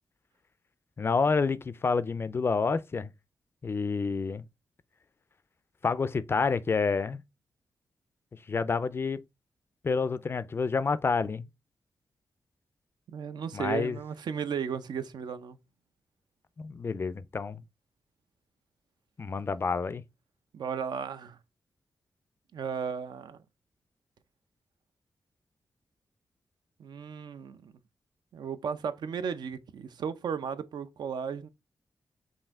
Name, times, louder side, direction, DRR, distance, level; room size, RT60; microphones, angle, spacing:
voice 1, 1.0-3.1 3.6-4.4 5.8-7.2 8.5-9.2 9.8-11.5 13.5-14.0 16.6-17.6 19.2-20.0, left 4 dB, 35° left, 0.3 m, -28 dB
voice 2, 13.1-15.6 20.5-21.4 22.5-23.4 26.8-27.7 28.3-31.5, right 7 dB, 80° right, 0.5 m, -35 dB
5.5 x 2.6 x 3.5 m
wide cardioid pair, 140°, 7 cm